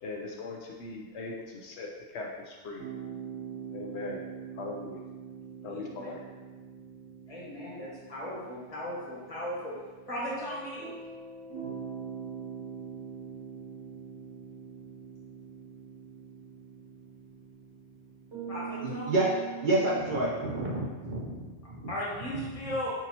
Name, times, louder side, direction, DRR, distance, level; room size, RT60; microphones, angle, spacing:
voice 1, 0.0-2.8 3.7-4.2 4.6-5.0 5.6-6.2, left 3 dB, 75° left, -1 dB, 0.9 m, -39 dB
sound 1, 2.8-20.6, right 6 dB, 80° right, 1.5 m, -43 dB
voice 2, 5.6-6.1 7.3-9.7 10.1-10.9 18.5-19.1 21.9-22.9, equal, 30° left, -7 dB, 1.3 m, -37 dB
voice 3, 18.8-19.3 19.6-21.9, right 2 dB, 50° right, -5 dB, 0.7 m, -29 dB
5.8 x 2.7 x 2.8 m, 1.3 s
omnidirectional pair, 1.2 m